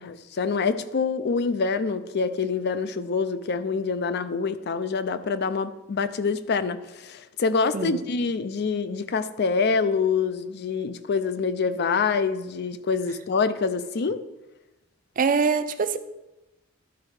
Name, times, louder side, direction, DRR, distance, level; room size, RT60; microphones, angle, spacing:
voice 1, 0.0-14.2, left 5 dB, 55° left, 0.5 m, -26 dB
voice 2, 15.2-16.0, right 5 dB, 40° right, 0.5 m, -23 dB
11.5 x 4.3 x 4.8 m
head